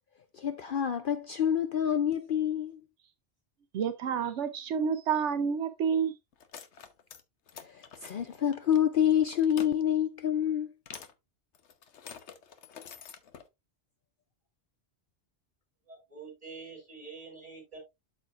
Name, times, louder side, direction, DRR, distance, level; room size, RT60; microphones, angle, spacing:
voice 1, 0.4-2.8 7.6-10.7, left 9 dB, 55° left, 0.7 m, -27 dB
voice 2, 3.7-6.1, right 7 dB, 80° right, 1.0 m, -29 dB
sound 1, 6.3-7.2 7.5-8.8 9.2-9.7 10.9-11.1 11.5-13.4, left 7 dB, 75° left, 1.2 m, -47 dB
voice 3, 15.9-17.8, right 4 dB, 30° right, 4.5 m, -46 dB
12.5 x 4.4 x 2.4 m
omnidirectional pair, 1.2 m